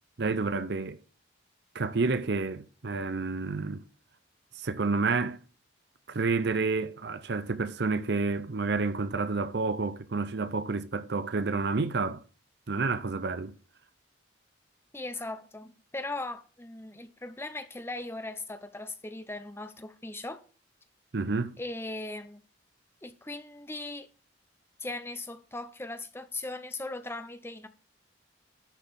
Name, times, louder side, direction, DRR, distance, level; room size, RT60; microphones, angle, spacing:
voice 1, 0.2-1.0 1.7-3.8 4.6-5.4 6.1-12.2 12.7-13.5 21.1-21.6, right 3 dB, 60° right, 0.6 m, -29 dB
voice 2, 14.9-20.4 21.6-22.4 23.0-24.1 24.8-27.7, left 2 dB, 10° left, 0.8 m, -38 dB
11.5 x 4.1 x 7.0 m
head